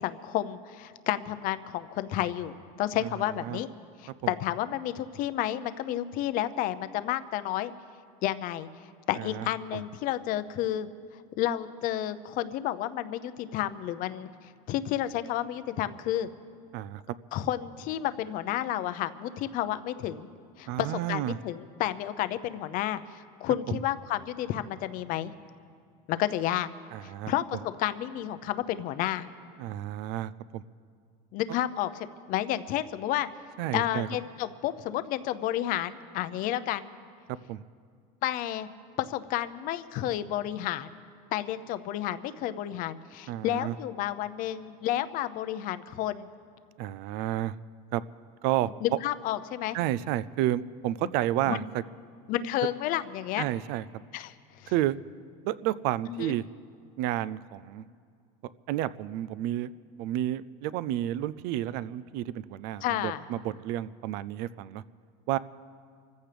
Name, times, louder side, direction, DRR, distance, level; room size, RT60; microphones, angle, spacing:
voice 1, 0.0-3.7 4.0-7.7 8.2-8.7 9.1-10.9 11.4-14.3 14.7-16.3 17.3-20.3 20.6-25.3 26.1-26.7 27.0-29.3 31.3-33.3 33.7-36.9 38.2-38.7 39.0-41.0 41.3-46.3 48.8-49.8 51.0-51.1 51.5-51.6 52.3-53.4 54.1-54.7 56.1-56.3 62.8-63.2, left 12 dB, 50° left, 12 dB, 0.7 m, -31 dB
voice 2, 9.2-9.8 16.7-17.0 20.7-21.4 23.7-23.8 26.9-27.3 29.6-30.6 33.6-34.1 37.5-37.6 43.3-43.7 46.8-47.5 47.9-48.0 48.4-48.7 49.7-51.8 53.4-54.0 54.7-55.0 55.4-56.4 57.0-57.8 58.7-59.7 60.0-64.8 65.3-65.4, right 13 dB, 55° right, 18 dB, 0.4 m, -31 dB
26.5 x 15.0 x 3.4 m, 2.2 s
supercardioid pair, 140°, 19 cm